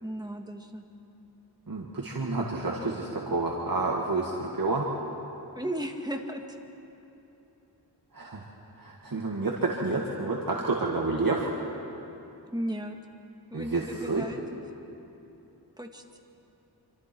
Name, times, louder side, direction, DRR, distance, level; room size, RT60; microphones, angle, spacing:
voice 1, 0.0-0.9 5.6-6.6 12.5-13.0 13.5-14.4 15.8-16.2, equal, 10° right, 3 dB, 1.8 m, -35 dB
voice 2, 1.7-4.8 8.1-8.4 8.8-11.5 13.5-14.3, right 3 dB, 55° right, -2 dB, 2.0 m, -29 dB
27.0 x 25.5 x 4.6 m, 3.0 s
wide cardioid pair, 80°, 41 cm